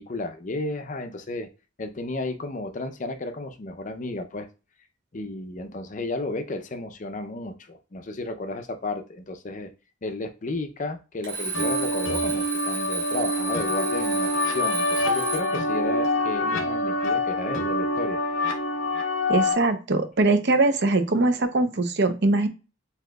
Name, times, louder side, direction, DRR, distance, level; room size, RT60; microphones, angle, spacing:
voice 1, 0.0-1.5 1.8-4.5 5.1-9.7 10.0-18.2, left 2 dB, 40° left, 8 dB, 0.5 m, -33 dB
Alarm, 11.2-15.7, right 3 dB, 25° right, 2.2 m, -32 dB
sound 1, 11.5-19.5, left 2 dB, 75° left, 0.8 m, -26 dB
voice 2, 19.3-22.5, right 2 dB, 55° right, 9 dB, 0.6 m, -22 dB
7.5 x 2.9 x 2.2 m, 0.31 s
head